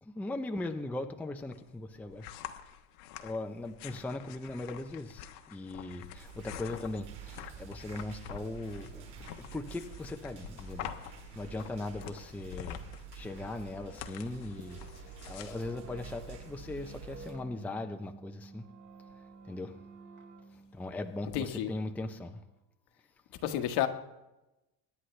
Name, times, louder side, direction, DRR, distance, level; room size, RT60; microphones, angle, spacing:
voice 1, 0.0-2.3 3.2-9.1 9.5-11.0 11.3-12.8 13.1-18.7 19.5-19.8 20.7-22.4, left 2 dB, 5° left, 5 dB, 0.6 m, -39 dB
sound 1, 1.4-16.7, left 11 dB, 85° left, 1.2 m, -47 dB
sound 2, 6.1-17.3, right 6 dB, 85° right, 5.3 m, -49 dB
sound 3, 13.8-22.6, right 4 dB, 45° right, 3.7 m, -53 dB
voice 2, 21.3-21.7 23.4-23.9, left 11 dB, 65° left, 7 dB, 1.5 m, -30 dB
23.0 x 9.8 x 3.3 m, 0.98 s
cardioid pair, 140°, 42 cm